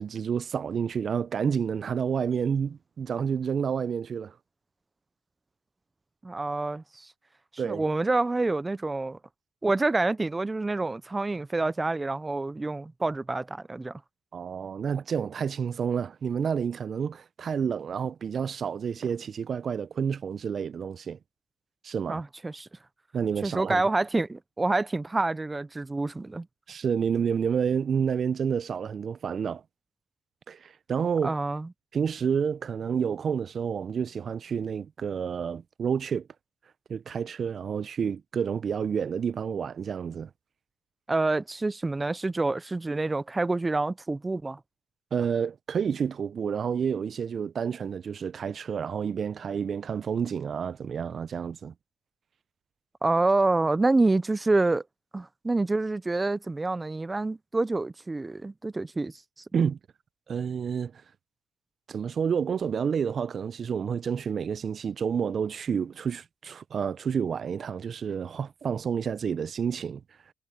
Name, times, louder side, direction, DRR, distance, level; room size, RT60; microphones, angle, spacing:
voice 1, 0.0-4.4 7.6-7.8 14.3-21.2 21.8-22.2 23.1-23.8 26.7-29.6 30.5-31.3 31.9-36.3 36.9-40.3 45.1-51.7 59.5-59.8 60.3-61.0 61.9-70.0, right 7 dB, 45° right, 0.9 m, -29 dB
voice 2, 6.2-7.1 7.6-9.2 9.6-14.0 22.1-22.7 23.4-26.5 31.2-31.7 41.1-44.6 53.0-54.8 55.1-59.1, right 2 dB, 20° right, 0.9 m, -27 dB
hypercardioid pair, 60°, 0 cm